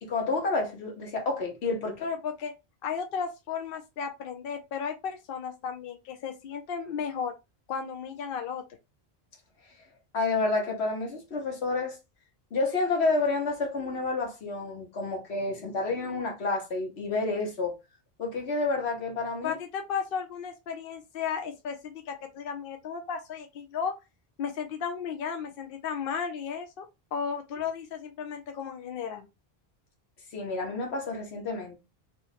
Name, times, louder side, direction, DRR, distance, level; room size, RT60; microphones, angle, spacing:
voice 1, 0.0-2.0 10.1-12.0 12.5-17.8 18.2-19.6 30.3-31.8, left 3 dB, 80° left, 1.4 m, -29 dB
voice 2, 2.0-2.5 2.8-7.3 7.7-8.6 19.4-23.9 24.4-26.9 27.1-29.3, left 6 dB, 65° left, 0.7 m, -34 dB
2.8 x 2.5 x 4.0 m
omnidirectional pair, 1.1 m